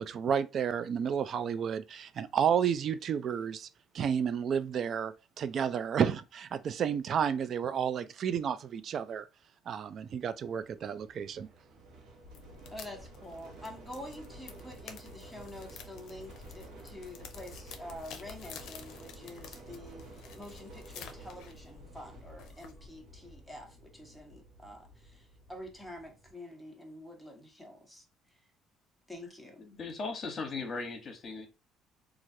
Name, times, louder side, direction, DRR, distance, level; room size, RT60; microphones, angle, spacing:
voice 1, 0.0-3.7 3.9-9.3 9.7-11.5, right 8 dB, 50° right, 0.3 m, -31 dB
sound 1, 9.9-26.3, right 1 dB, 75° right, 0.9 m, -52 dB
sound 2, 12.2-23.0, left 6 dB, 70° left, 0.5 m, -51 dB
voice 2, 12.7-28.0 28.3-28.4 29.1-29.6, left 1 dB, 5° right, 1.0 m, -47 dB
voice 3, 29.6-31.5, left 4 dB, 45° left, 1.0 m, -38 dB
3.1 x 2.4 x 2.6 m
cardioid pair, 105°, 0 cm